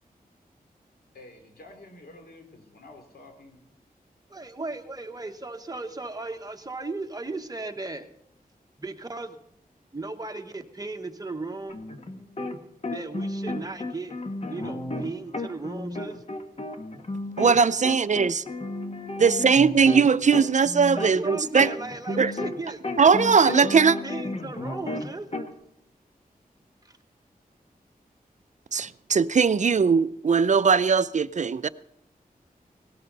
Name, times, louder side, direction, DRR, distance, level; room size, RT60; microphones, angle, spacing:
voice 1, 1.1-3.6, left 2 dB, 90° left, 3.0 m, -49 dB
voice 2, 4.3-8.1 8.8-9.4 9.9-11.8 12.9-14.1 14.5-16.2 20.9-25.3, right 3 dB, 25° right, 1.2 m, -36 dB
sound 1, 11.7-12.6 12.8-17.6 17.8-22.6 22.8-25.5, left 2 dB, 40° left, 1.4 m, -33 dB
voice 3, 17.4-18.4 19.2-21.7 22.2-22.3 23.0-24.0 28.7-31.7, right 5 dB, 50° right, 0.5 m, -20 dB
18.0 x 13.0 x 4.0 m
wide cardioid pair, 80°, 16 cm